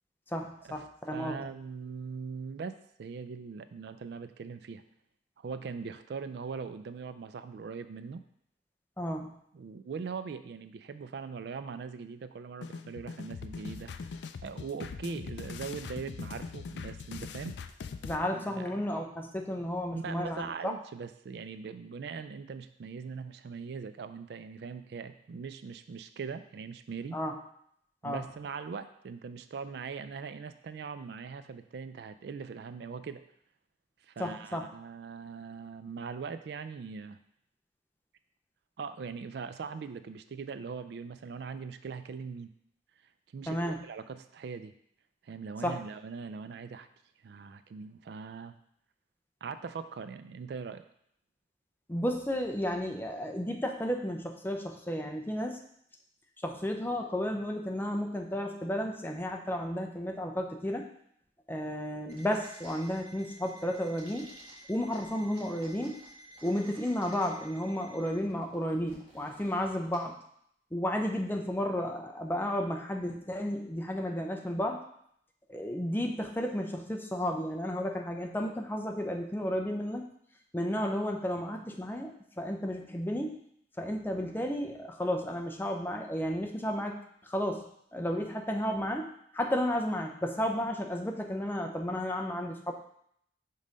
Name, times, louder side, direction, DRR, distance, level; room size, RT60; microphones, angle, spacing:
voice 1, 0.3-1.5 9.0-9.3 18.0-20.7 27.1-27.4 28.0-28.2 34.2-34.6 43.5-43.8 45.6-45.8 51.9-55.6 56.4-60.9 61.5-64.3 64.7-66.0 66.4-70.1 70.7-74.8 75.5-80.1 80.5-82.1 82.4-83.4 83.8-87.0 87.2-87.6 87.9-92.7, equal, 10° left, 2 dB, 0.5 m, -33 dB
voice 2, 1.1-4.8 5.4-8.2 9.5-17.6 18.2-18.8 19.9-27.2 28.0-33.2 34.0-37.2 38.8-42.5 43.3-44.7 45.2-46.9 47.2-48.5 49.4-50.9, right 5 dB, 60° right, 11 dB, 0.3 m, -41 dB
sound 1, 12.6-18.2, left 5 dB, 65° left, 0.3 m, -41 dB
Alarm, 62.1-68.2, right 1 dB, 35° left, 0.8 m, -53 dB
sound 2, 62.1-62.9 63.2-64.5 64.9-65.0 65.3-67.5 67.8-67.9 68.1-69.9, right 1 dB, 30° right, 1.6 m, -54 dB
5.4 x 4.0 x 5.1 m, 0.70 s
head